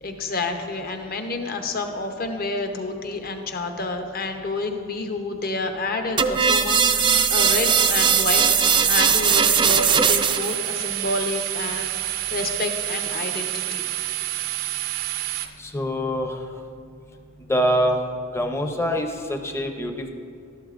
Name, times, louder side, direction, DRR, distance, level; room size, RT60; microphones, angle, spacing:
voice 1, 0.0-13.9, left 2 dB, 45° left, 5 dB, 0.8 m, -29 dB
sound 1, 6.2-10.6, right 7 dB, 25° right, 0.3 m, -19 dB
sound 2, 9.3-15.5, right 14 dB, 80° right, 0.6 m, -28 dB
voice 2, 15.6-16.3 17.5-18.0 18.3-20.1, equal, 15° left, 4 dB, 0.6 m, -24 dB
12.5 x 11.5 x 2.5 m, 2.4 s
head